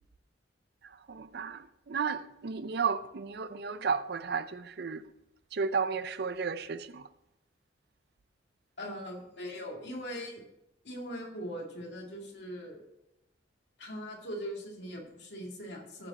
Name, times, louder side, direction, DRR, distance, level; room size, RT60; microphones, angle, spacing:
voice 1, 1.1-5.0 5.5-7.0, right 5 dB, 60° right, 0.5 m, -33 dB
voice 2, 8.8-10.4 10.8-12.8 13.8-16.1, equal, 65° left, 2.3 m, -40 dB
14.5 x 5.2 x 4.2 m
head